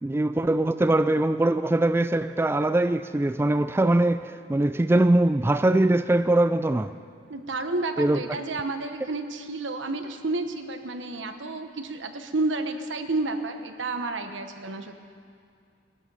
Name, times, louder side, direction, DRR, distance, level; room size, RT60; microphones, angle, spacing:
voice 1, 0.0-6.9 8.0-8.2, right 1 dB, 15° right, 0.3 m, -22 dB
voice 2, 7.3-14.9, right 2 dB, 80° right, 1.2 m, -30 dB
20.0 x 12.0 x 5.6 m
head